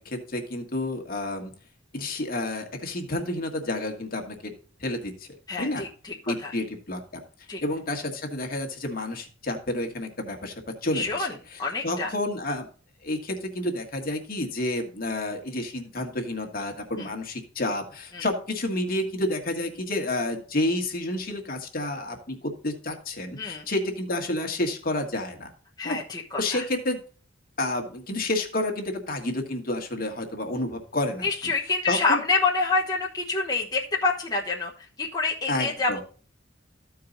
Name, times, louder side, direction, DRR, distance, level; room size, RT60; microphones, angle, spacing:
voice 1, 0.0-1.5 1.9-4.5 4.8-5.3 5.6-5.8 6.3-7.2 7.6-10.5 10.8-12.7 13.0-25.5 25.8-26.0 26.4-27.0 27.6-31.3 31.9-32.2 35.5-36.0, left 1 dB, 50° left, 4 dB, 1.7 m, -30 dB
voice 2, 5.5-6.5 7.5-7.6 10.9-12.1 17.0-17.1 18.1-18.3 23.4-23.6 25.8-26.6 31.2-34.7 35.0-36.0, left 3 dB, 20° left, -3 dB, 1.1 m, -27 dB
14.0 x 4.8 x 3.9 m, 0.39 s
head